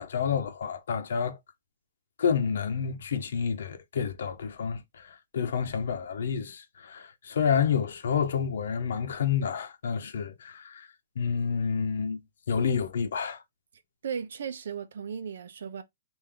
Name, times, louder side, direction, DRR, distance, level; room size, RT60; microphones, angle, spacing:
voice 1, 0.0-1.4 2.2-10.9 11.2-12.2 12.5-13.4, left 7 dB, 75° left, 0.8 m, -29 dB
voice 2, 14.0-15.8, right 7 dB, 75° right, 0.7 m, -36 dB
3.3 x 2.6 x 3.7 m
hypercardioid pair, 175°, 0 cm